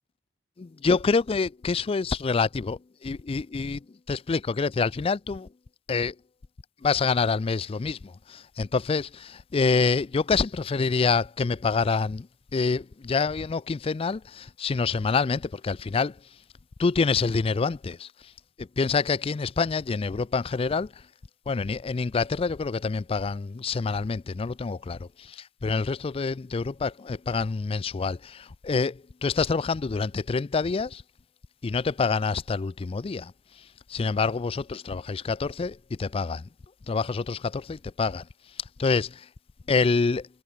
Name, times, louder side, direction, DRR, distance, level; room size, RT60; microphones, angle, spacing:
voice 1, 0.6-5.5 5.9-6.1 6.8-12.3 12.5-16.2 16.8-18.1 18.6-20.9 21.5-31.0 31.6-33.3 33.9-36.5 36.9-38.3 38.8-39.3 39.7-40.3, left 4 dB, 30° left, 0.4 m, -27 dB
head